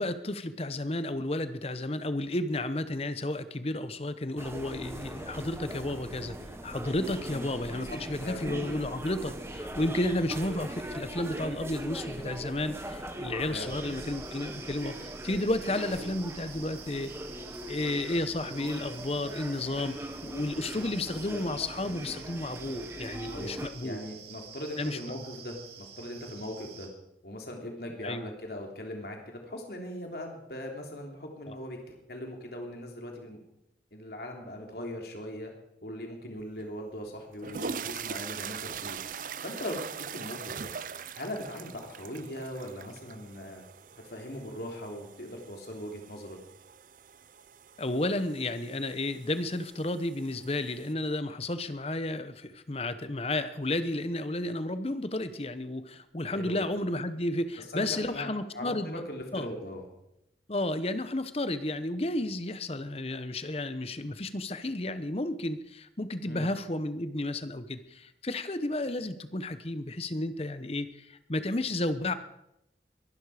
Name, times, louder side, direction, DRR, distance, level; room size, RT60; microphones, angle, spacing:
voice 1, 0.0-6.4 6.6-17.1 17.7-24.0 24.8-25.2 28.0-28.3 31.5-31.6 47.8-59.0 59.3-59.5 60.5-72.1, left 1 dB, 35° left, 12 dB, 0.9 m, -32 dB
sound 1, 4.4-23.7, right 1 dB, 15° right, 1.2 m, -41 dB
voice 2, 7.9-8.4 13.5-13.8 23.3-26.9 27.2-33.4 33.9-35.5 35.8-39.0 39.4-40.7 41.1-43.6 44.0-46.4 56.3-56.6 57.6-59.8 66.2-66.5, left 1 dB, 60° left, 2 dB, 3.3 m, -40 dB
sound 2, 13.6-26.9, right 7 dB, 70° right, 2.8 m, -48 dB
sound 3, 36.6-36.7 37.3-50.9, right 6 dB, 50° right, 0.5 m, -42 dB
22.0 x 11.5 x 5.0 m, 0.82 s
head